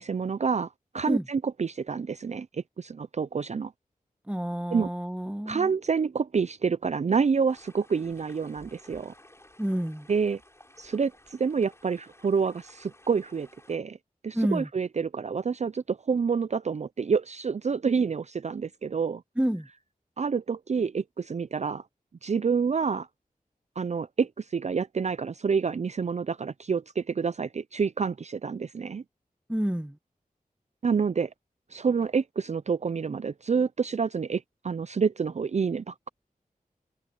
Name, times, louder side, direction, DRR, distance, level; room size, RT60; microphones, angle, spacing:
voice 1, 0.0-3.7 4.7-4.9 5.5-9.1 10.1-10.4 10.8-14.0 14.2-19.2 20.2-21.8 22.2-23.1 23.8-29.0 30.8-31.3 31.7-36.1, right 5 dB, 50° right, 0.4 m, -28 dB
voice 2, 4.3-5.7 9.6-10.1 14.3-14.7 19.4-19.7 29.5-30.0, right 1 dB, 5° right, 1.4 m, -29 dB
sound 1, 7.5-13.8, left 1 dB, 20° left, 6.0 m, -55 dB
wide cardioid pair, 60°, 15 cm